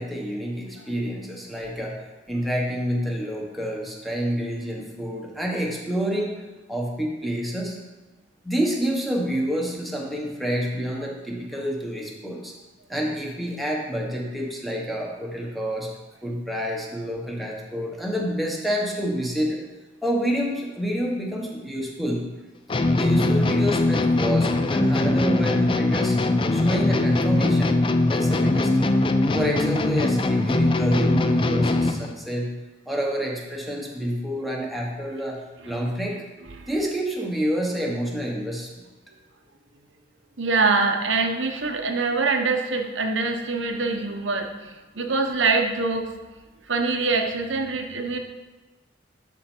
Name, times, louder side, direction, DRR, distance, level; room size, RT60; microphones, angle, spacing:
voice 1, 0.0-2.0 2.3-6.4 6.7-7.8 8.4-12.5 12.9-15.9 16.2-19.6 20.0-22.3 23.0-26.2 26.5-27.8 28.0-29.0 29.3-32.5 32.9-36.2 36.7-38.7, equal, ahead, -2 dB, 1.1 m, -28 dB
sound 1, 22.7-32.1, left 2 dB, 25° left, 0.4 m, -21 dB
voice 2, 40.4-44.7 45.0-46.1 46.7-48.2, right 3 dB, 80° right, 4 dB, 0.9 m, -24 dB
12.5 x 4.5 x 4.5 m, 1.2 s
head